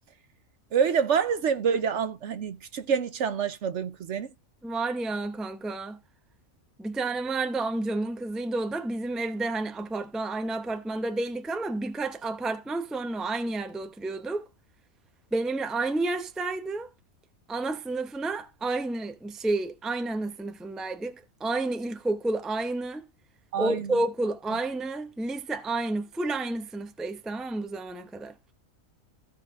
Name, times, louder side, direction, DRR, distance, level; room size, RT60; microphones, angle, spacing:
voice 1, 0.7-4.3 23.5-23.9, right 7 dB, 60° right, 1.0 m, -27 dB
voice 2, 4.6-6.0 6.8-14.5 15.3-16.9 17.5-23.0 23.6-28.3, right 2 dB, ahead, 0.6 m, -30 dB
15.5 x 5.4 x 2.5 m
omnidirectional pair, 1.4 m